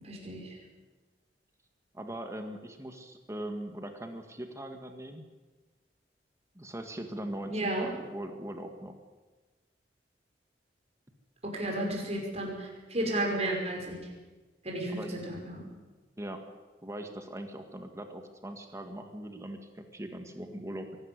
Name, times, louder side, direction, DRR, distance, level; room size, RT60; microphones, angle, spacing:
voice 1, 0.0-0.5 7.4-7.9 11.4-14.0 14.6-15.6, right 1 dB, 40° right, 0 dB, 5.9 m, -33 dB
voice 2, 1.9-5.2 6.6-8.9 14.9-15.2 16.2-16.4 16.8-21.0, right 1 dB, 15° right, 5 dB, 1.8 m, -40 dB
23.5 x 13.0 x 9.8 m, 1.3 s
head